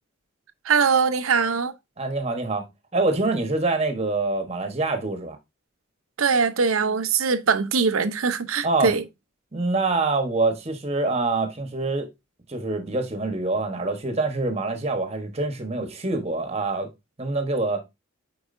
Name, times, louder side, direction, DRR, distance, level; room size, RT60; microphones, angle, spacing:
voice 1, 0.6-1.7 6.2-9.0, right 5 dB, 90° right, 0.7 m, -22 dB
voice 2, 2.0-2.6 2.9-5.4 8.6-8.9 9.5-12.1 12.5-16.9 17.2-17.8, right 3 dB, 30° right, 1.1 m, -25 dB
8.6 x 4.7 x 2.6 m
head